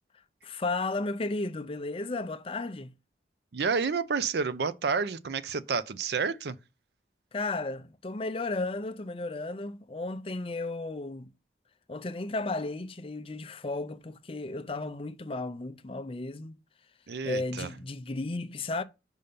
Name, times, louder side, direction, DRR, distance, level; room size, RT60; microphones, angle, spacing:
voice 1, 0.4-2.9 7.3-11.3 11.9-16.6 17.2-18.8, left 2 dB, 30° left, 0.5 m, -34 dB
voice 2, 3.5-6.6 17.1-17.7, right 5 dB, 70° right, 0.5 m, -30 dB
5.5 x 5.3 x 5.1 m
head